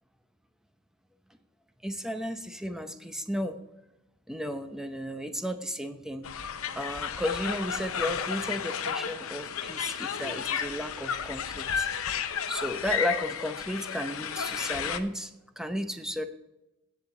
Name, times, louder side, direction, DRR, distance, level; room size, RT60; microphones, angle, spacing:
voice 1, 1.8-3.6 4.3-6.3 6.8-11.9 12.5-16.2, equal, 5° right, 8 dB, 0.7 m, -34 dB
sound 1, 6.2-15.0, left 7 dB, 70° left, 0.8 m, -33 dB
15.5 x 7.8 x 3.9 m, 0.98 s
head